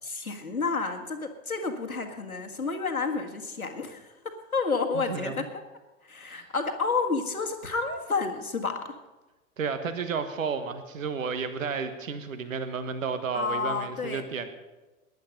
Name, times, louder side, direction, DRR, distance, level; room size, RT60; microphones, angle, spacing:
voice 1, 0.0-5.6 6.0-8.9 13.3-14.2, left 4 dB, 85° left, 4 dB, 1.7 m, -30 dB
voice 2, 4.9-5.5 6.2-6.5 9.6-14.5, right 5 dB, 70° right, 10 dB, 1.4 m, -32 dB
18.5 x 11.0 x 5.3 m, 1.1 s
figure-of-eight pair, 90°, 42 cm